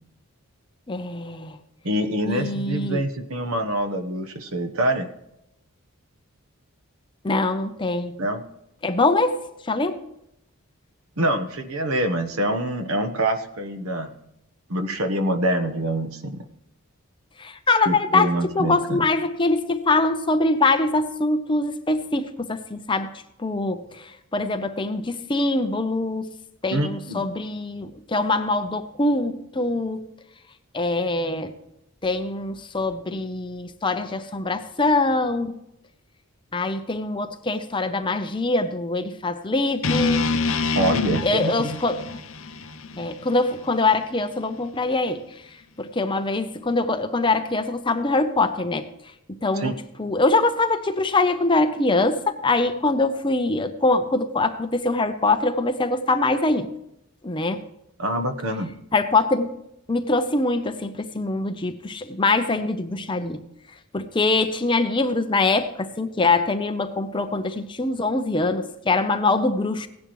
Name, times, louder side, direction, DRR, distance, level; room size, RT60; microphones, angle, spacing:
voice 1, 0.9-1.6 2.3-3.0 7.2-8.2 8.8-9.4 9.7-10.0 17.4-23.1 23.4-26.3 26.6-30.0 30.7-31.6 32.0-35.6 36.5-40.3 41.2-42.0 43.0-45.2 45.8-48.9 49.4-49.7 50.0-56.7 57.2-57.6 58.9-59.5 59.9-63.4 63.9-69.9, left 2 dB, 20° left, 8 dB, 0.7 m, -23 dB
voice 2, 1.8-5.1 8.2-8.4 11.2-14.1 14.7-16.4 17.8-19.1 26.7-27.2 40.7-41.8 49.5-49.7 58.0-58.7, right 1 dB, 70° right, 8 dB, 1.2 m, -25 dB
sound 1, 39.8-44.0, left 3 dB, 65° left, 0.8 m, -26 dB
17.0 x 10.5 x 3.1 m, 0.83 s
head